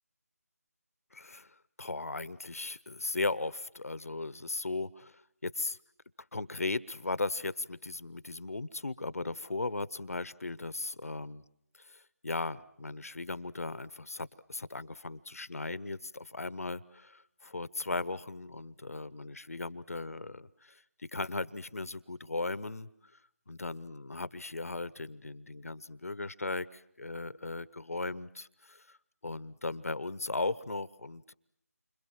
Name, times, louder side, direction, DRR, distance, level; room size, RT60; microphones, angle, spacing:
voice 1, 1.1-5.8 6.3-11.4 11.8-20.8 21.1-22.9 23.5-29.0 29.2-31.3, left 3 dB, 60° left, 18 dB, 1.0 m, -37 dB
29.0 x 26.0 x 7.6 m, 0.75 s
figure-of-eight pair, 160°, 9 cm